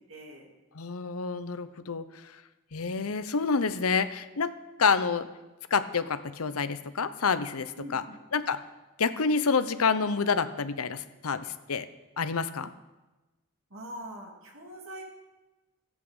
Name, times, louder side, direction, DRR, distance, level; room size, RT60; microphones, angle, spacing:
voice 1, 0.1-0.5 7.8-8.2 13.7-15.0, equal, 70° right, 0 dB, 2.4 m, -43 dB
voice 2, 0.7-2.0 2.7-4.5 4.8-5.3 5.7-8.0 8.3-8.6 9.0-11.9 12.2-12.7, left 5 dB, 85° left, 12 dB, 0.8 m, -28 dB
14.0 x 8.4 x 8.0 m, 1.1 s
head